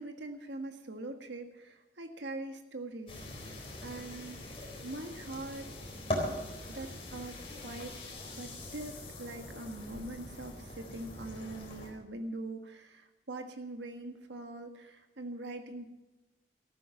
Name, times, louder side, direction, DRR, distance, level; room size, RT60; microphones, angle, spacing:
voice 1, 0.0-3.6 3.8-4.4 4.8-5.7 6.7-8.0 8.3-15.9, right 2 dB, 80° right, 5 dB, 1.6 m, -43 dB
sound 1, 3.1-11.9, left 1 dB, 30° left, 3.9 m, -41 dB
14.5 x 13.0 x 5.9 m, 1.0 s
head